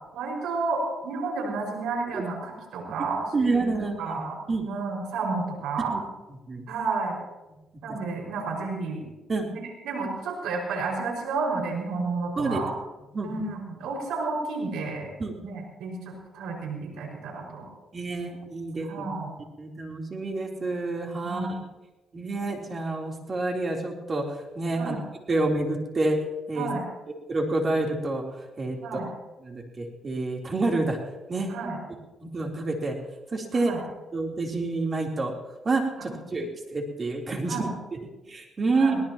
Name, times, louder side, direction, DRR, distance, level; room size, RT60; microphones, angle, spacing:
voice 1, 0.1-3.7 4.0-4.4 4.7-5.9 6.7-7.2 7.8-9.0 9.8-12.7 13.2-15.1 15.4-17.7 18.8-19.3 21.2-21.6 24.7-25.0 26.5-26.8 28.8-29.1 31.5-31.8 33.5-33.8 37.4-37.7 38.7-39.0, right 4 dB, 85° right, 0 dB, 5.5 m, -31 dB
voice 2, 3.3-4.2 4.5-4.6 5.9-6.0 6.5-6.6 9.3-9.5 12.4-12.6 13.1-13.3 15.2-15.3 17.9-19.1 19.6-21.6 22.1-24.2 24.6-25.0 25.3-26.2 26.5-26.7 27.1-28.2 28.6-28.8 29.4-31.0 31.3-31.5 32.2-33.0 33.3-33.8 34.1-35.3 35.6-37.7 38.3-38.9, right 3 dB, 35° right, 0 dB, 3.5 m, -28 dB
22.0 x 18.5 x 3.0 m, 1.0 s
cardioid pair, 90°, 0 cm